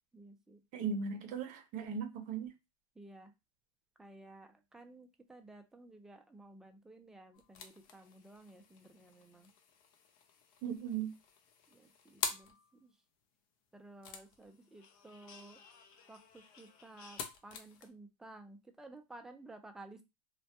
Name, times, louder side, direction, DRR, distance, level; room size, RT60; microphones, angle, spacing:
voice 1, 0.1-0.6 3.0-3.3 4.0-9.5 11.7-12.9 13.7-15.6 16.1-20.0, right 2 dB, 5° right, 0.3 m, -55 dB
voice 2, 0.7-2.5 10.6-11.1, right 6 dB, 45° right, 0.6 m, -37 dB
sound 1, 7.3-12.8 14.0-17.9, left 6 dB, 60° left, 0.6 m, -47 dB
2.2 x 2.0 x 2.8 m
supercardioid pair, 120°, 19 cm